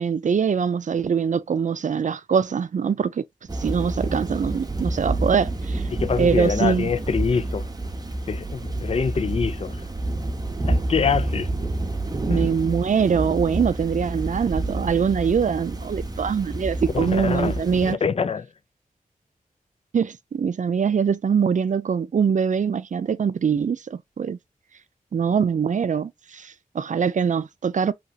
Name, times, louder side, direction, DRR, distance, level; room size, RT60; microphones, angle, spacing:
voice 1, 0.0-3.2 3.5-5.8 6.2-6.9 12.3-18.0 19.9-24.4 25.1-27.9, right 6 dB, 55° right, 0.4 m, -23 dB
Thunder / Rain, 3.5-17.9, right 2 dB, 25° right, 0.7 m, -28 dB
voice 2, 5.9-7.7 8.3-9.9 10.7-11.5 12.3-12.5 16.9-18.5, left 6 dB, 40° left, 0.4 m, -25 dB
2.9 x 2.7 x 2.3 m
cardioid pair, 45°, 15 cm